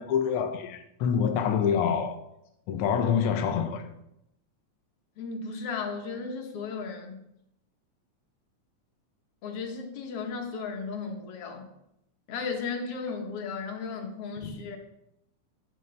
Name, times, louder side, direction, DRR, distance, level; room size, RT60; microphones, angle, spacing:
voice 1, 0.0-2.1 2.7-3.9 14.4-14.5, left 7 dB, 80° left, 1.2 m, -26 dB
voice 2, 5.2-7.2 9.4-11.7 12.3-14.8, left 5 dB, 55° left, 2.1 m, -35 dB
10.5 x 7.1 x 3.4 m
omnidirectional pair, 3.5 m